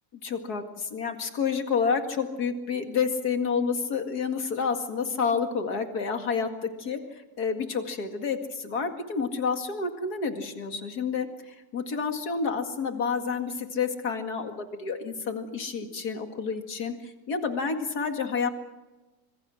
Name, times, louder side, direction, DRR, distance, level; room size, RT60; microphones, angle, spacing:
voice 1, 0.2-14.5 14.8-18.5, left 5 dB, 85° left, 6 dB, 2.6 m, -29 dB
25.5 x 22.5 x 6.3 m, 1.1 s
omnidirectional pair, 1.6 m